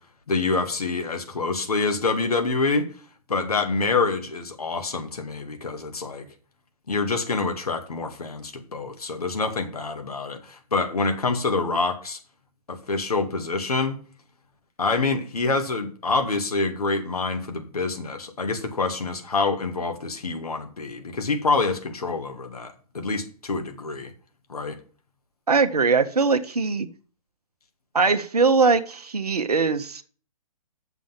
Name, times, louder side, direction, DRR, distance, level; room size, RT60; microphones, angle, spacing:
voice 1, 0.3-2.9 3.3-6.3 6.9-12.2 12.7-14.0 14.8-24.1 24.5-24.8, left 3 dB, 75° left, 2.0 m, -26 dB
voice 2, 25.5-26.9 27.9-30.0, right 4 dB, 80° right, 0.9 m, -21 dB
6.9 x 6.2 x 7.3 m
figure-of-eight pair, 125°, 19 cm